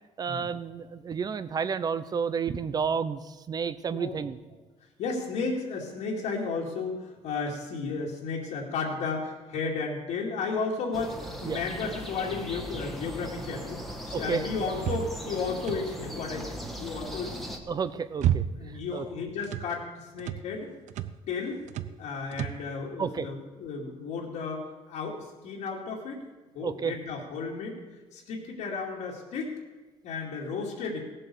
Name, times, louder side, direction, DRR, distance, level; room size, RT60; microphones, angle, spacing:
voice 1, 0.2-4.4 11.4-11.6 14.1-14.4 17.7-18.4 18.9-19.1 23.0-23.3 26.6-26.9, right 6 dB, 35° right, 14 dB, 0.7 m, -31 dB
voice 2, 5.0-17.5 18.6-20.7 21.3-21.6 22.0-26.2 26.5-27.8 28.1-29.6 30.0-31.0, left 4 dB, 80° left, -5 dB, 2.5 m, -33 dB
sound 1, 10.9-17.6, equal, ahead, 1.5 m, -39 dB
sound 2, 14.8-16.1 17.6-18.8 19.1-19.7 20.2-20.5 20.9-21.2 21.7-22.0 22.3-22.7, right 11 dB, 80° right, 0.7 m, -31 dB
17.0 x 7.8 x 6.9 m, 1.2 s
cardioid pair, 135°, 12 cm